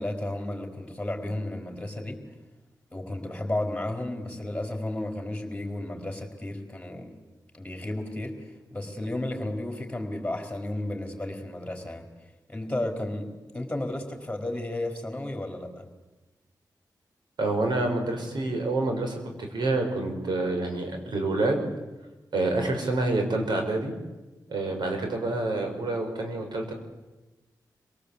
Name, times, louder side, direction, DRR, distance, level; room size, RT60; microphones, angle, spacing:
voice 1, 0.0-2.2 2.9-7.1 7.5-8.4 8.7-12.1 12.5-15.9, left 1 dB, 15° left, 4 dB, 4.6 m, -33 dB
voice 2, 17.4-21.6 22.3-23.9 24.5-26.7, right 2 dB, 80° right, 3 dB, 4.9 m, -27 dB
25.5 x 18.5 x 8.4 m, 1.1 s
cardioid pair, 75°, 7 cm